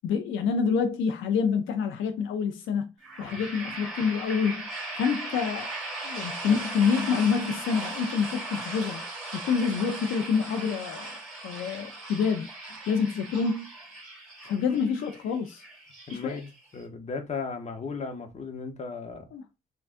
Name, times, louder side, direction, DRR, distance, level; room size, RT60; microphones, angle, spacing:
voice 1, 0.0-2.9 3.2-4.6 5.0-5.7 6.0-9.0 9.3-12.5 12.9-13.7 14.4-15.6 16.1-16.4 19.3-19.4, left 6 dB, 80° left, 0.5 m, -27 dB
sound 1, 3.0-16.8, right 2 dB, ahead, 1.9 m, -38 dB
voice 2, 16.1-19.3, left 4 dB, 35° left, 0.8 m, -36 dB
3.4 x 2.3 x 2.5 m
cardioid pair, 90°, 20 cm